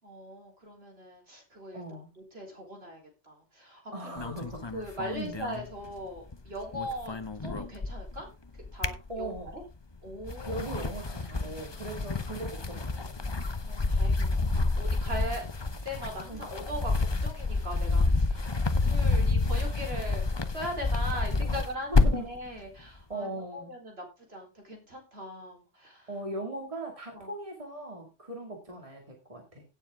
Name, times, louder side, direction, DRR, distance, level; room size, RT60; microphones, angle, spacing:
voice 1, 0.0-1.8 2.2-4.3 4.7-7.2 7.4-8.3 8.7-9.6 10.0-10.6 13.4-15.4 15.8-20.2 20.5-26.1 27.1-27.3, equal, 55° right, 1 dB, 4.2 m, -40 dB
voice 2, 1.7-2.1 3.9-4.7 5.1-5.4 9.1-9.5 10.5-13.1 16.3-16.5 21.1-21.6 21.9-22.2 23.1-23.7 26.1-29.6, right 2 dB, 25° right, 2 dB, 2.5 m, -39 dB
sound 1, 4.2-6.3 6.6-8.2 8.6-9.6 10.1-22.4, left 3 dB, 25° left, 0.8 m, -29 dB
16.5 x 7.3 x 3.7 m, 0.28 s
omnidirectional pair, 1.3 m